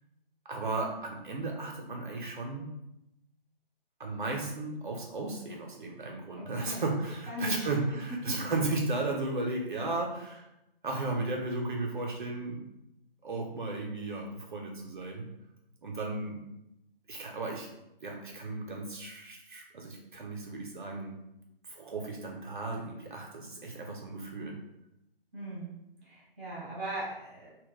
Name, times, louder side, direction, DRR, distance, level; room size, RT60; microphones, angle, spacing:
voice 1, 0.5-2.7 4.0-10.5 10.8-12.7 13.2-15.3 15.8-16.4 17.1-17.7 18.0-21.2 21.7-24.6, right 2 dB, 55° right, 0 dB, 0.5 m, -35 dB
voice 2, 6.4-6.8 7.3-7.7 8.3-8.4 25.3-25.7 26.0-27.5, equal, 10° left, -14 dB, 0.3 m, -38 dB
2.1 x 2.0 x 3.7 m, 0.87 s
figure-of-eight pair, 140°, 30 cm